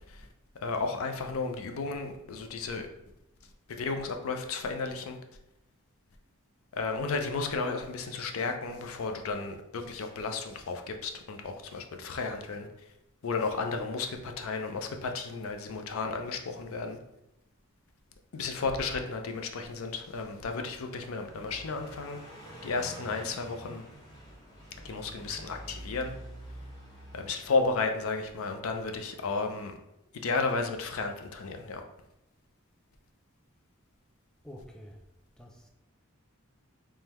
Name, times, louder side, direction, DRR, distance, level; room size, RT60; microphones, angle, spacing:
voice 1, 0.6-2.9 3.7-5.2 6.7-12.7 13.2-17.0 18.3-22.2 22.6-23.8 24.8-26.1 27.1-29.7 30.1-31.8, left 4 dB, 65° left, 5 dB, 0.5 m, -33 dB
Car passing by, 20.1-28.6, right 1 dB, 20° left, 0.8 m, -48 dB
voice 2, 22.8-23.2 34.4-35.0 35.4-35.7, equal, 5° left, 1 dB, 0.3 m, -49 dB
3.6 x 3.2 x 2.9 m, 0.89 s
head